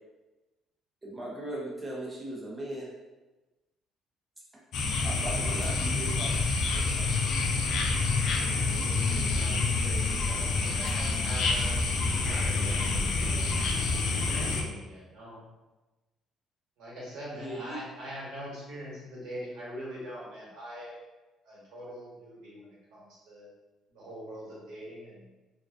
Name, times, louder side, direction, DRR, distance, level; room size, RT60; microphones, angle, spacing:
voice 1, 1.0-2.9 5.0-7.1 17.3-17.8, right 1 dB, 20° right, -5 dB, 0.6 m, -38 dB
sound 1, 4.7-14.6, left 3 dB, 65° left, 0.3 m, -27 dB
voice 2, 9.4-11.8 12.1-13.5 14.1-15.4 16.8-21.0 21.4-23.5 23.9-25.3, equal, 85° right, -7 dB, 1.0 m, -43 dB
2.4 x 2.2 x 2.3 m, 1.1 s
cardioid pair, 115°, 0 cm